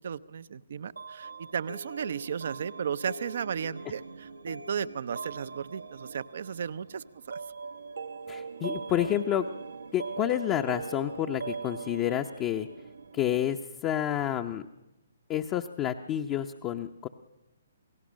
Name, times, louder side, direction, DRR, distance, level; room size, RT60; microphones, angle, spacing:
voice 1, 0.0-7.4, right 7 dB, 60° right, 15 dB, 0.7 m, -35 dB
sound 1, 1.0-13.5, right 4 dB, 75° right, 1.0 m, -41 dB
voice 2, 8.3-9.5 9.9-12.7 13.1-14.6 15.3-17.1, left 11 dB, 25° left, 4 dB, 0.8 m, -29 dB
28.5 x 18.0 x 6.4 m, 0.98 s
figure-of-eight pair, 135°, 0 cm